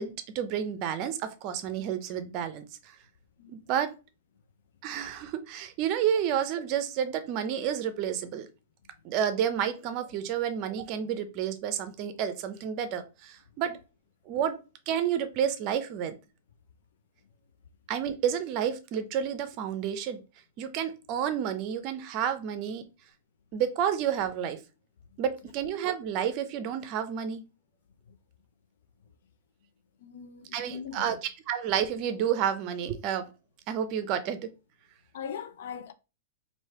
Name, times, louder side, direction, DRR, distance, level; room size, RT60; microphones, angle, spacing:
voice 1, 0.0-2.6 3.5-3.9 4.8-8.5 9.0-13.8 14.3-14.6 14.9-16.2 17.9-20.2 20.6-22.9 23.5-24.6 25.2-27.5 30.5-31.2 31.5-33.3 33.7-34.5, right 9 dB, 40° right, 0.6 m, -30 dB
voice 2, 30.0-31.2 35.1-35.9, left 7 dB, 70° left, 0.6 m, -40 dB
3.2 x 2.7 x 4.4 m
hypercardioid pair, 140°, 0 cm